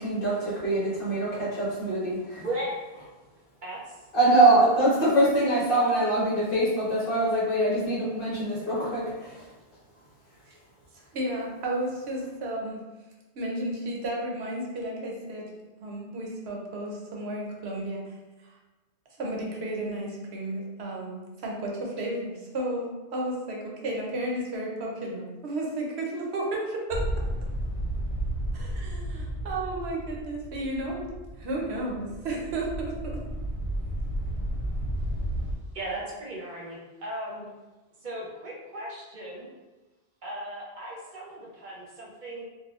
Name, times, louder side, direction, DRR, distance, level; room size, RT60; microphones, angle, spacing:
voice 1, 0.0-2.4 4.1-9.5, right 1 dB, 55° left, -8 dB, 1.3 m, -24 dB
voice 2, 2.4-2.8 3.6-4.0 35.7-37.5 38.0-39.5 40.2-42.4, right 1 dB, 50° right, -4 dB, 0.9 m, -36 dB
voice 3, 11.1-12.8 13.3-15.5 15.8-18.0 19.2-27.1 28.5-31.1 31.4-33.2, right 1 dB, 80° right, -1 dB, 0.9 m, -33 dB
sound 1, 26.9-35.5, right 1 dB, 90° left, 1.0 m, -32 dB
4.2 x 2.3 x 2.4 m, 1.1 s
omnidirectional pair, 1.1 m